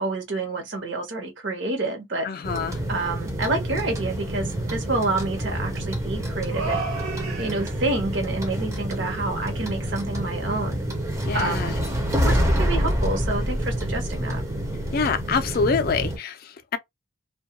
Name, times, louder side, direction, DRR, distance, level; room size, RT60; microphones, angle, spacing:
voice 1, 0.0-2.3 2.9-6.8 7.4-10.8 11.3-11.8 12.2-14.4, right 2 dB, 55° right, 0.8 m, -28 dB
voice 2, 2.2-2.8 11.3-11.8 14.9-16.8, left 5 dB, 45° left, 0.3 m, -26 dB
sound 1, 2.4-16.2, equal, 15° right, 0.5 m, -27 dB
sound 2, 4.0-4.1 4.6-5.7 6.5-7.9, right 4 dB, 80° right, 1.1 m, -34 dB
2.2 x 2.1 x 2.8 m
head